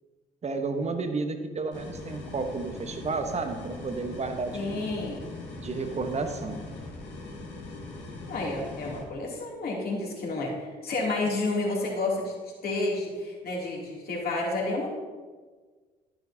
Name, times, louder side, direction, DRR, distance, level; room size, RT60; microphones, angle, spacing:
voice 1, 0.4-4.9 5.6-6.6, right 4 dB, 35° right, 7 dB, 1.1 m, -32 dB
sound 1, 1.7-9.0, left 3 dB, 65° left, 2.2 m, -41 dB
voice 2, 4.5-5.3 8.3-12.3 12.6-14.9, left 2 dB, 50° left, -3 dB, 2.9 m, -30 dB
11.5 x 8.8 x 2.8 m, 1.4 s
hypercardioid pair, 55°, 20 cm